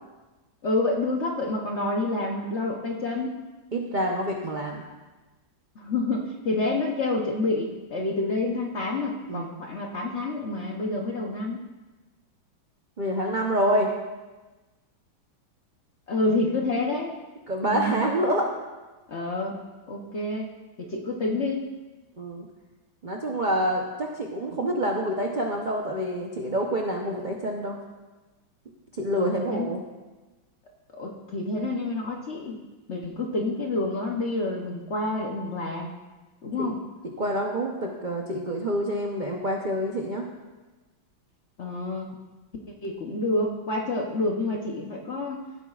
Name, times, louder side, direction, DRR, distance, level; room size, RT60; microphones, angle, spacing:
voice 1, 0.6-3.4 5.8-11.6 16.1-17.1 17.6-18.0 19.1-19.6 19.9-20.5 20.8-21.7 29.1-29.7 31.0-32.6 32.9-35.9 36.4-36.8 41.6-42.1 42.8-45.5, left 2 dB, 55° left, 0 dB, 0.8 m, -28 dB
voice 2, 3.7-4.8 9.3-9.5 13.0-13.9 16.9-17.0 17.5-18.5 22.2-22.4 23.0-27.8 29.0-29.8 36.6-36.7 37.2-40.2, right 1 dB, 85° right, 0 dB, 0.4 m, -27 dB
15.5 x 8.2 x 2.4 m, 1.2 s
omnidirectional pair, 2.1 m